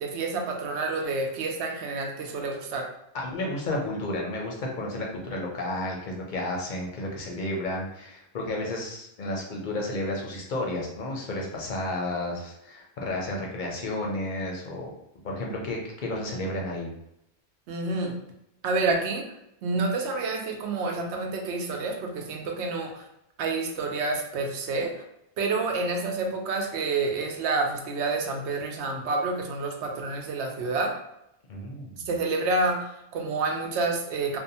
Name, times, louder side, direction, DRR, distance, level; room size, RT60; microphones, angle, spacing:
voice 1, 0.0-2.9 17.7-18.2 18.6-19.3 19.6-23.0 23.4-24.9 25.4-30.9 32.1-34.4, right 3 dB, 90° right, 2 dB, 0.9 m, -28 dB
voice 2, 3.1-14.9 15.2-16.9 31.5-32.0, left 1 dB, 55° left, -1 dB, 0.6 m, -32 dB
2.7 x 2.1 x 2.6 m, 0.82 s
omnidirectional pair, 1.1 m